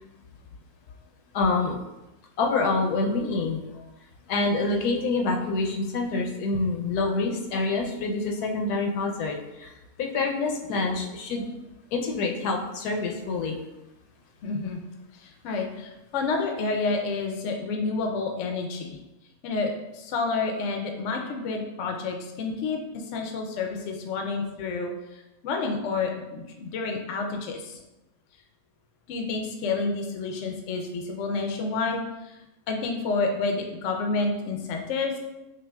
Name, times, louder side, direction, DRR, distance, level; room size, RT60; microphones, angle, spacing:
voice 1, 1.3-1.8 2.4-3.8 4.3-9.7 10.0-11.5 11.9-13.6, left 3 dB, 90° left, 1 dB, 1.1 m, -26 dB
voice 2, 14.4-14.8 15.2-18.9 19.4-22.8 23.1-24.9 25.4-27.8 29.1-32.4 32.7-35.2, left 4 dB, 65° left, 3 dB, 0.8 m, -29 dB
5.0 x 2.4 x 2.2 m, 0.97 s
omnidirectional pair, 1.6 m